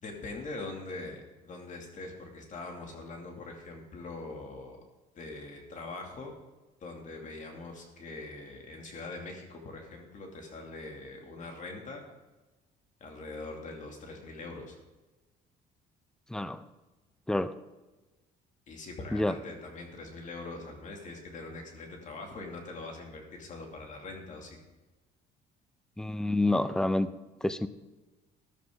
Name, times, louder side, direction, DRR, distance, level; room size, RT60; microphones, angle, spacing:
voice 1, 0.0-4.8 5.2-6.3 6.8-12.0 13.0-14.7 18.7-24.6, left 3 dB, 45° left, 2 dB, 2.8 m, -42 dB
voice 2, 16.3-16.6 17.3-17.5 19.1-19.3 26.0-27.1 27.4-27.7, left 2 dB, 5° left, 13 dB, 0.6 m, -28 dB
14.0 x 12.0 x 3.9 m, 1.1 s
cardioid pair, 110°, 17 cm